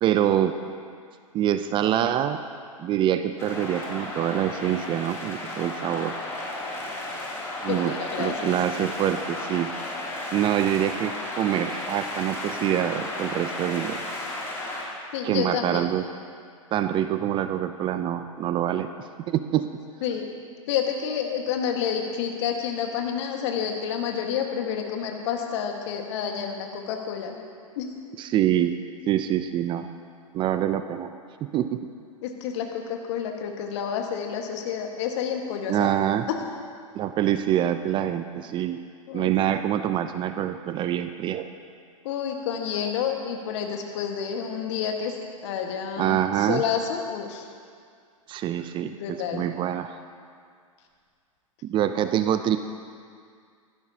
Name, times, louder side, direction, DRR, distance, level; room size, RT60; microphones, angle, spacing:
voice 1, 0.0-0.6 1.3-2.4 2.8-6.2 7.6-9.7 10.3-14.0 15.2-16.1 16.7-18.9 19.3-19.7 28.2-28.8 29.1-29.9 30.3-31.1 31.4-31.9 35.7-36.3 36.9-38.8 39.1-41.5 46.0-46.6 48.3-49.9 51.6-52.6, right 11 dB, 30° right, 10 dB, 0.5 m, -25 dB
sound 1, 3.4-14.8, left 2 dB, 15° left, 2.9 m, -34 dB
voice 2, 7.7-8.6 15.1-15.8 20.0-20.2 20.7-27.4 27.8-27.9 32.2-35.9 39.1-39.3 42.0-45.1 45.4-47.5 48.8-49.4, left 8 dB, 55° left, 3 dB, 1.6 m, -29 dB
16.0 x 13.0 x 2.9 m, 2.2 s
figure-of-eight pair, 100°, 18 cm